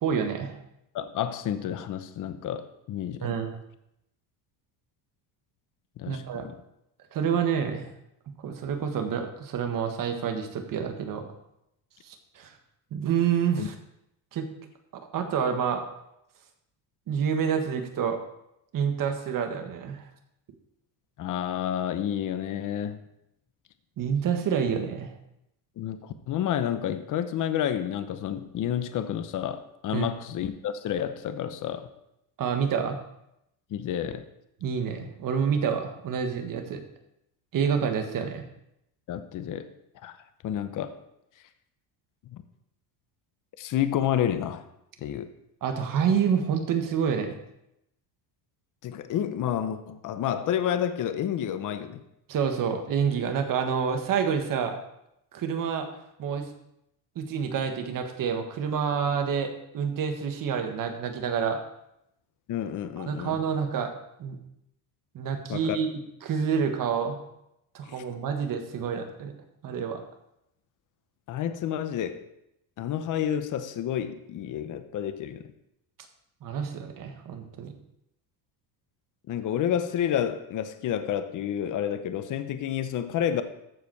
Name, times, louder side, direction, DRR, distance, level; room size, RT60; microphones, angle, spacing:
voice 1, 0.0-0.6 3.2-3.6 6.1-6.5 7.1-7.9 8.3-11.2 12.0-12.5 12.9-13.7 14.3-14.5 14.9-15.8 17.1-18.2 18.7-20.0 24.0-25.1 29.9-30.1 32.4-33.0 34.6-36.8 37.5-38.4 45.6-47.4 52.3-54.8 55.3-55.9 56.2-56.5 57.1-61.6 63.0-63.9 64.2-64.4 65.1-65.9 66.2-67.2 67.7-69.3 69.6-70.0 76.4-77.7, right 7 dB, 45° right, 5 dB, 1.5 m, -28 dB
voice 2, 0.9-3.3 6.0-6.5 13.6-13.7 21.2-23.0 25.8-31.9 33.7-34.2 39.1-39.7 40.0-40.2 40.4-40.9 42.3-42.4 43.6-44.6 45.0-45.3 48.8-52.0 62.5-63.4 65.5-65.8 67.9-68.0 71.3-72.3 72.8-75.5 79.3-83.4, left 10 dB, 40° left, 10 dB, 0.8 m, -30 dB
14.0 x 4.9 x 4.7 m, 0.82 s
cardioid pair, 135°, 46 cm